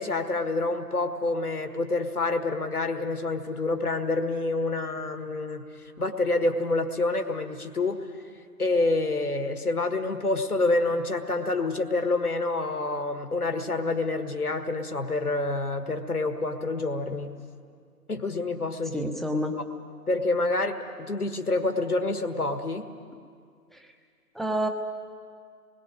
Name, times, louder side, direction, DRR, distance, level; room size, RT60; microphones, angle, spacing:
voice 1, 0.0-5.6 6.0-8.0 8.6-17.4 18.1-19.1 19.6-19.7 20.1-20.8 21.1-22.9, left 2 dB, 70° left, 6 dB, 1.6 m, -27 dB
voice 2, 18.9-19.5 24.4-24.7, equal, ahead, 3 dB, 0.5 m, -27 dB
29.0 x 21.0 x 5.1 m, 2.2 s
figure-of-eight pair, 160°, 47 cm